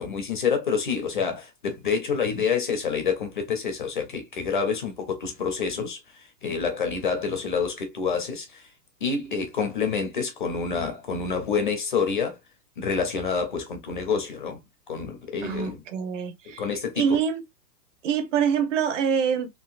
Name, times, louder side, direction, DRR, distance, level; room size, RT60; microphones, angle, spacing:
voice 1, 0.0-8.7 9.0-12.4 12.8-14.6 14.9-15.8 16.5-17.2, left 5 dB, 35° left, 0.5 m, -28 dB
voice 2, 15.4-16.6 17.0-17.4 18.0-19.5, right 7 dB, 50° right, 0.9 m, -25 dB
3.8 x 2.4 x 2.4 m
hypercardioid pair, 155°, 50 cm